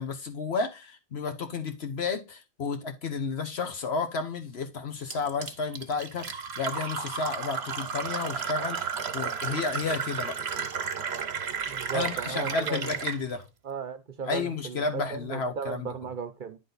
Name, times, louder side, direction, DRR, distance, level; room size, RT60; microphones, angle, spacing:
voice 1, 0.0-10.4 11.9-13.4 14.3-15.9, left 4 dB, 80° left, 1.4 m, -32 dB
Fill (with liquid), 5.1-13.2, right 6 dB, 90° right, 1.2 m, -33 dB
voice 2, 11.6-12.9 13.6-16.6, right 5 dB, 55° right, 0.9 m, -36 dB
9.7 x 3.8 x 4.0 m
omnidirectional pair, 1.1 m